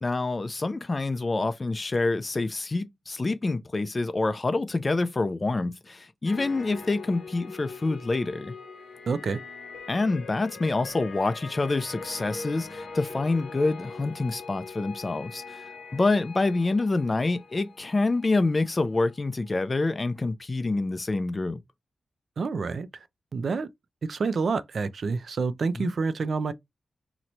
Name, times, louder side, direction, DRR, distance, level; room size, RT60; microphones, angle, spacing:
voice 1, 0.0-8.5 9.9-21.6 25.8-25.9, left 3 dB, 25° left, 0.4 m, -27 dB
sound 1, 6.3-19.5 19.9-20.1, left 4 dB, 75° left, 0.8 m, -43 dB
voice 2, 9.1-9.4 22.4-23.1 23.3-23.7 24.0-26.5, right 4 dB, 55° right, 0.3 m, -28 dB
3.0 x 2.1 x 3.9 m
wide cardioid pair, 155°, 0 cm